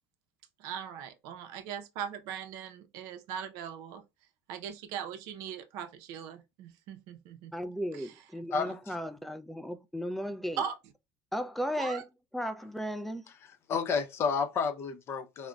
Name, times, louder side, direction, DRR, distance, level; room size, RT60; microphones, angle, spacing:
voice 1, 0.6-4.0 4.5-8.1 8.7-8.8 10.6-10.8 11.7-12.0, right 8 dB, 70° right, 0.5 m, -40 dB
voice 2, 7.5-10.6 11.3-12.0 12.3-13.3, equal, 5° left, 0.4 m, -35 dB
voice 3, 8.5-8.9 13.4-15.5, left 5 dB, 40° left, 0.6 m, -31 dB
3.7 x 2.1 x 2.3 m
supercardioid pair, 100°, 6 cm